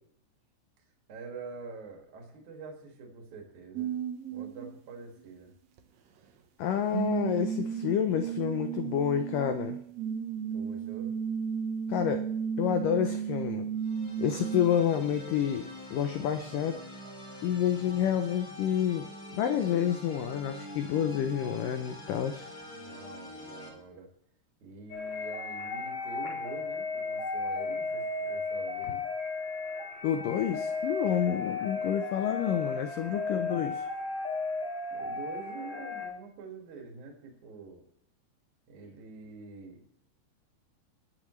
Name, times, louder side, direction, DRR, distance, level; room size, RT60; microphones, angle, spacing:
voice 1, 1.1-4.0 4.3-5.5 10.5-11.1 22.6-24.1 24.6-29.0 34.9-37.8 38.7-39.8, right 4 dB, 50° right, 1 dB, 3.3 m, -46 dB
sound 1, 3.7-4.8 5.8-5.9 6.6-6.7 6.9-14.8 15.2-15.3, right 8 dB, 80° right, 1.5 m, -34 dB
voice 2, 6.6-9.8 11.9-12.2 12.6-13.7 14.2-16.8 17.4-22.5 30.0-33.8, left 9 dB, 90° left, 7 dB, 1.9 m, -29 dB
sound 2, 13.8-23.7, equal, 25° left, 3.2 m, -45 dB
sound 3, 24.9-36.1, left 3 dB, 55° left, 6.3 m, -34 dB
20.5 x 11.0 x 3.2 m, 0.68 s
omnidirectional pair, 4.9 m